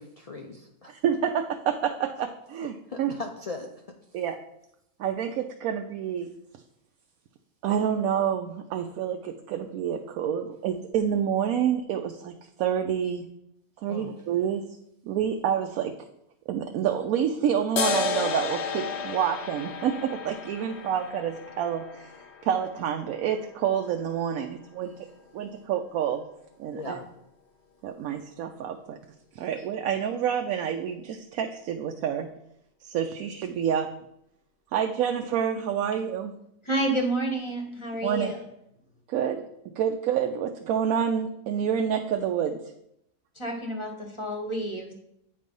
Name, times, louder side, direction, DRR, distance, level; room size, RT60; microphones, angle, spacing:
voice 1, 0.0-0.9 2.9-3.7 13.9-14.1 26.7-27.1, left 3 dB, 70° left, 2 dB, 0.3 m, -38 dB
voice 2, 0.9-3.1 4.1-4.4 5.0-6.3 7.6-12.3 12.6-13.3 13.8-14.6 15.1-15.9 16.5-22.1 22.4-25.1 25.3-26.2 26.6-27.0 27.8-29.0 29.3-32.3 32.8-33.9 34.7-36.4 38.0-38.3 39.1-39.5 39.8-42.6, right 8 dB, 80° right, 4 dB, 1.0 m, -28 dB
sound 1, 17.8-24.7, left 4 dB, 55° left, 0.9 m, -33 dB
voice 3, 36.6-38.4 43.4-44.9, right 1 dB, 25° left, 2 dB, 1.0 m, -29 dB
8.8 x 3.3 x 5.3 m, 0.77 s
omnidirectional pair, 1.5 m